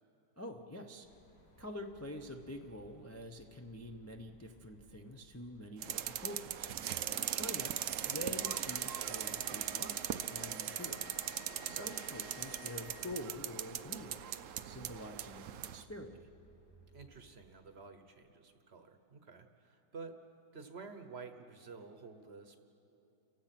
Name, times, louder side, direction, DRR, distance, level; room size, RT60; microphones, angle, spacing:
voice 1, 0.4-1.1 1.6-7.8 8.0-11.1 11.7-14.2 14.6-16.3, left 1 dB, 20° left, 3 dB, 0.4 m, -47 dB
sound 1, 1.0-17.5, right 1 dB, 70° left, 4.0 m, -64 dB
sound 2, 5.8-15.8, right 10 dB, 65° right, 0.8 m, -39 dB
sound 3, 8.1-13.3, left 6 dB, 55° left, 0.9 m, -55 dB
voice 2, 16.9-20.1 20.5-22.6, right 4 dB, 45° right, 7 dB, 1.1 m, -51 dB
30.0 x 16.0 x 5.9 m, 3.0 s
omnidirectional pair, 1.8 m